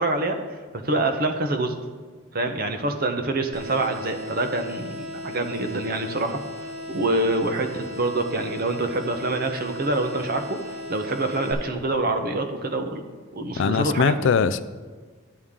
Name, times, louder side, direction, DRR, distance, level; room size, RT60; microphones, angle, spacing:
voice 1, 0.0-1.8 2.3-6.4 6.9-13.0 13.3-14.4, right 2 dB, 40° right, 6 dB, 0.7 m, -26 dB
sound 1, 3.5-11.5, left 1 dB, 75° right, 2.7 m, -37 dB
voice 2, 13.6-14.6, left 6 dB, 55° left, 15 dB, 0.3 m, -21 dB
11.0 x 8.3 x 3.6 m, 1.5 s
head